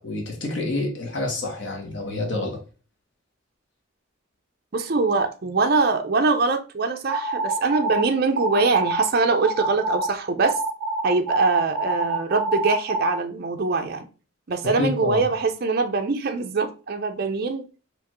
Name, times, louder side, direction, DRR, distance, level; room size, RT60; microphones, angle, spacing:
voice 1, 0.0-2.6 14.8-15.2, left 2 dB, 60° left, 1 dB, 1.0 m, -28 dB
voice 2, 4.7-10.5 11.0-14.1 14.5-17.6, right 3 dB, 50° right, 5 dB, 0.5 m, -23 dB
sound 1, 7.1-8.0 8.4-9.1 9.4-10.1 10.4-13.1, right 2 dB, 15° right, 2.0 m, -26 dB
4.4 x 2.6 x 3.0 m, 0.35 s
head